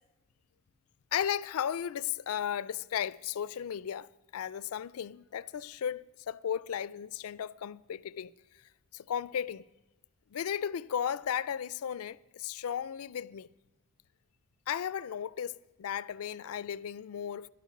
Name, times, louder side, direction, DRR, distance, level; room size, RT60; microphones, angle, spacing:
voice 1, 1.1-8.3 8.9-9.6 10.3-13.5 14.7-17.5, left 9 dB, 70° left, 0.4 m, -35 dB
12.0 x 12.0 x 5.9 m
head